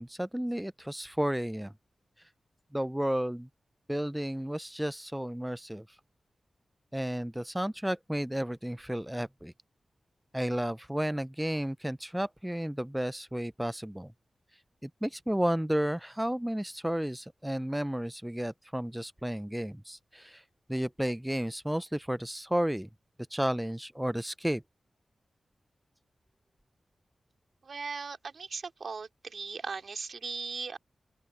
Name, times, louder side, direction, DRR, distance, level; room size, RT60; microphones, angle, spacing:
voice 1, 0.0-1.7 2.7-3.5 3.9-5.9 6.9-9.5 10.3-14.1 14.8-20.4 20.7-22.9 23.3-24.6, equal, 5° right, 0.4 m, -32 dB
voice 2, 27.6-30.8, right 5 dB, 70° right, 3.1 m, -38 dB
open air
cardioid pair, 45°, 0 cm